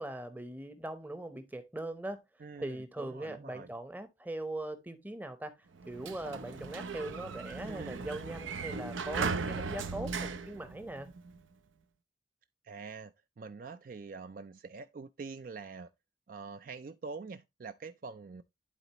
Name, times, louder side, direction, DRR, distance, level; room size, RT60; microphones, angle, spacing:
voice 1, 0.0-2.2 2.6-5.6 5.9-11.1, right 1 dB, 10° right, 0.7 m, -41 dB
voice 2, 2.4-3.7 7.6-8.0 12.6-15.9 16.3-18.4, right 4 dB, 45° right, 0.4 m, -45 dB
Sliding door, 5.8-11.4, right 4 dB, 85° right, 0.6 m, -38 dB
11.5 x 4.0 x 2.9 m
head